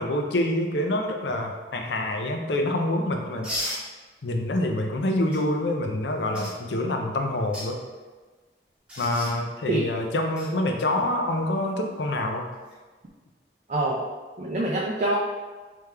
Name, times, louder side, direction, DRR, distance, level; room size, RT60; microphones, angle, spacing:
voice 1, 0.0-3.5 4.2-7.8 9.0-12.5, left 1 dB, 75° left, 3 dB, 0.5 m, -26 dB
sound 1, 3.4-3.8 5.3-5.4 6.3-6.5 7.4-7.7 8.9-9.3 10.4-10.5 12.5-12.7, left 1 dB, 5° right, 1.1 m, -33 dB
voice 2, 13.7-14.0 14.4-15.2, right 1 dB, 40° right, -3 dB, 0.4 m, -25 dB
3.5 x 3.3 x 3.2 m, 1.3 s
head